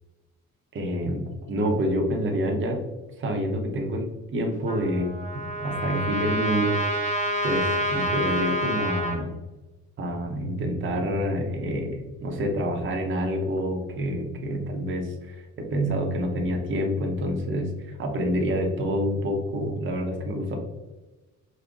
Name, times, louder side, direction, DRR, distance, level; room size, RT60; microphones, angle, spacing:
voice 1, 0.7-2.8 3.2-6.8 7.4-9.3 10.0-20.6, equal, 40° right, 1 dB, 0.7 m, -27 dB
Trumpet, 4.7-9.2, equal, 25° left, 1.0 m, -28 dB
5.2 x 2.0 x 2.3 m, 1.1 s
cardioid pair, 90°, 30 cm